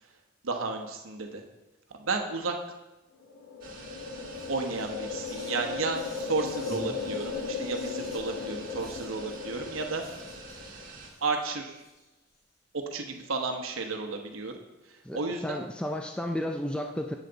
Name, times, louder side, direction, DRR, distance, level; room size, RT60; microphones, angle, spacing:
voice 1, 0.4-1.4 2.0-2.6 4.5-10.0 11.2-11.8 12.7-14.5 14.9-15.6, right 3 dB, 85° right, 4 dB, 1.0 m, -32 dB
sound 1, 3.2-10.8, left 5 dB, 85° left, 1.9 m, -37 dB
sound 2, 3.6-11.1, right 3 dB, 45° right, 1.8 m, -47 dB
Whispering, 3.9-4.0 4.3-12.4, left 1 dB, 45° left, 2.9 m, -54 dB
voice 2, 15.0-17.1, left 1 dB, 5° left, 4 dB, 0.4 m, -33 dB
10.5 x 8.3 x 4.0 m, 1.0 s
head